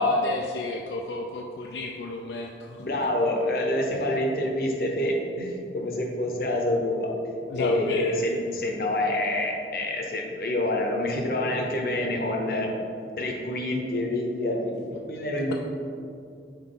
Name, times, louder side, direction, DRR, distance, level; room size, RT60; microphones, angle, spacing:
voice 1, 0.0-2.9 7.5-8.2 15.5-15.6, left 2 dB, 80° left, 1 dB, 0.4 m, -31 dB
voice 2, 2.8-7.1 7.5-12.8 13.2-15.5, left 1 dB, 55° left, 1 dB, 0.8 m, -27 dB
5.8 x 4.4 x 3.8 m, 2.5 s
head